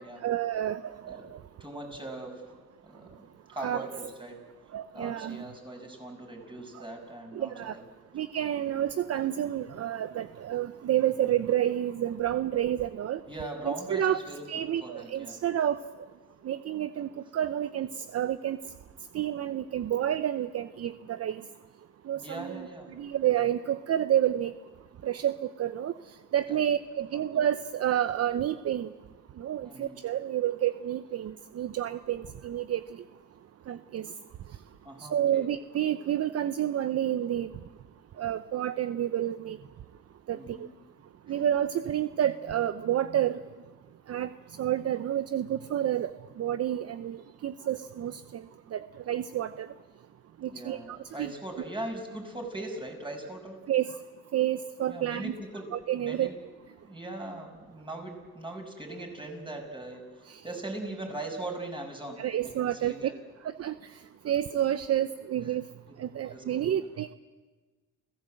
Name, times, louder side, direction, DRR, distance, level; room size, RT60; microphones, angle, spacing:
voice 1, 0.0-1.4 3.6-3.8 4.7-5.4 6.7-6.9 7.3-7.8 8.1-13.2 13.7-14.2 14.5-15.8 16.4-18.6 19.1-21.4 22.1-24.5 25.0-25.9 26.3-28.9 29.4-33.0 33.7-34.1 35.0-37.5 38.2-39.6 40.3-40.7 41.3-43.4 44.1-44.3 44.6-46.1 46.4-48.4 48.7-49.7 50.4-51.3 53.7-54.0 54.3-55.3 55.7-56.3 60.3-60.4 62.2-63.0 63.6-64.0 64.2-65.6 66.0-67.1, right 11 dB, 55° right, 12 dB, 0.7 m, -29 dB
voice 2, 1.6-2.5 2.8-3.2 3.5-4.4 4.9-7.8 13.3-14.4 14.8-15.4 22.1-22.9 26.5-26.6 27.1-27.4 29.6-30.0 34.8-35.5 40.3-40.7 41.3-41.4 50.5-53.6 54.9-56.3 56.8-60.0 60.4-63.1 66.1-66.8, right 2 dB, 15° right, 2 dB, 6.5 m, -40 dB
29.5 x 16.5 x 7.8 m, 1.3 s
cardioid pair, 90°, 30 cm